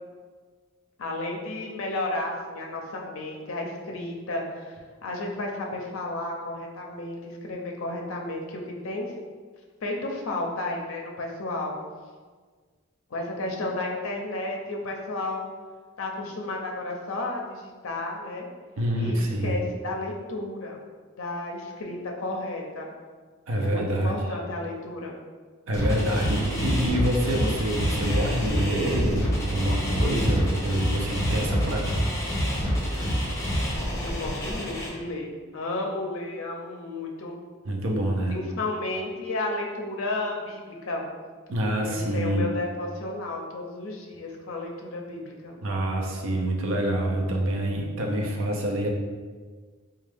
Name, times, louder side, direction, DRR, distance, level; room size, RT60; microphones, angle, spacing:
voice 1, 1.0-9.1 9.8-11.8 13.1-15.5 16.0-18.5 19.0-20.8 21.2-22.9 23.6-25.1 34.0-37.4 38.3-41.0 41.8-45.6, left 2 dB, 65° left, 0 dB, 0.5 m, -32 dB
voice 2, 18.8-19.6 23.5-24.2 25.7-31.9 37.7-38.4 41.5-42.5 45.6-48.9, right 1 dB, 65° right, 0 dB, 0.5 m, -26 dB
sound 1, 25.7-34.9, equal, 15° left, 0.7 m, -27 dB
3.4 x 2.3 x 3.3 m, 1.5 s
head